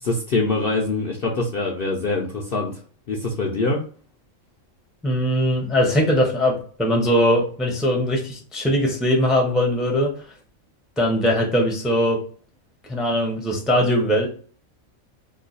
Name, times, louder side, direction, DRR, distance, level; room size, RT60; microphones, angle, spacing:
voice 1, 0.0-2.8 3.1-3.8, left 3 dB, 55° left, -1 dB, 0.6 m, -24 dB
voice 2, 5.0-10.1 11.0-12.2 12.9-14.3, equal, ahead, 1 dB, 0.6 m, -20 dB
3.0 x 2.3 x 3.9 m, 0.43 s
omnidirectional pair, 1.4 m